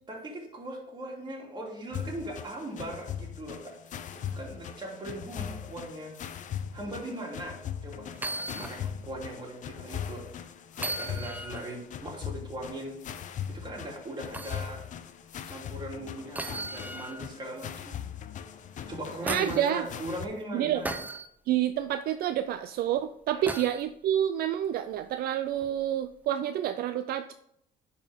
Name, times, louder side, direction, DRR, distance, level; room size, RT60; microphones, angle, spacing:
voice 1, 0.1-6.2 6.7-10.5 10.8-13.0 13.5-14.9 15.5-18.0 18.9-21.0 23.3-23.6, right 1 dB, 25° right, -2 dB, 2.6 m, -39 dB
sound 1, 1.9-20.3, left 9 dB, 50° left, 0.6 m, -40 dB
sound 2, 8.1-8.8 9.2-9.3 10.7-11.8 14.3-14.6 16.3-17.3 18.8-19.7 20.8-21.3 23.5-23.8 25.6-25.7, right 2 dB, 10° right, 0.6 m, -36 dB
voice 2, 19.2-19.8 20.5-20.8 21.5-27.3, right 11 dB, 65° right, 10 dB, 0.4 m, -28 dB
10.5 x 4.4 x 3.5 m, 0.74 s
cardioid pair, 110°, 17 cm